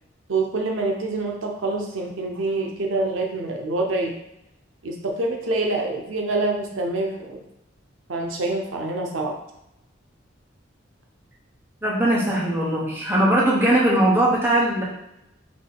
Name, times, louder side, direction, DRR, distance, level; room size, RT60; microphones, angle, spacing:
voice 1, 0.3-4.2 4.8-7.5 8.1-9.4, right 2 dB, 85° right, 1 dB, 0.7 m, -26 dB
voice 2, 11.8-14.8, right 1 dB, 10° right, -5 dB, 1.0 m, -20 dB
3.8 x 3.0 x 3.9 m, 0.84 s
head